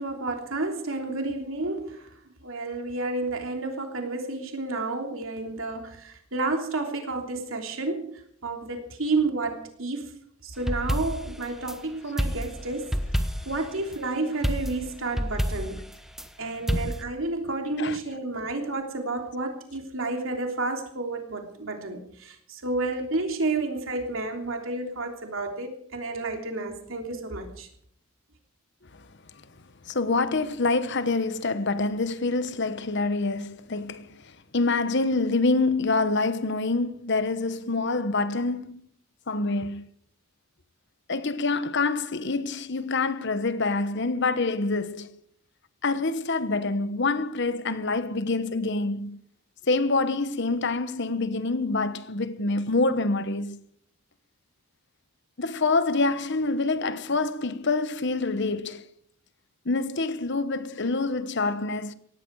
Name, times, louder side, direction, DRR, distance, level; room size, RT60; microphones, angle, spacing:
voice 1, 0.0-2.0 2.4-10.1 10.4-12.9 13.4-15.8 16.4-27.7, right 2 dB, 65° right, 3.3 m, -31 dB
sound 1, 10.6-11.8 12.2-13.6 14.4-16.3 16.7-17.0, equal, ahead, 1.1 m, -29 dB
voice 2, 29.9-34.1 34.5-38.8 39.3-39.8 41.1-45.1 45.8-49.2 49.7-53.6 55.4-58.9 59.6-61.9, left 3 dB, 55° left, 1.1 m, -26 dB
18.0 x 15.0 x 4.8 m
head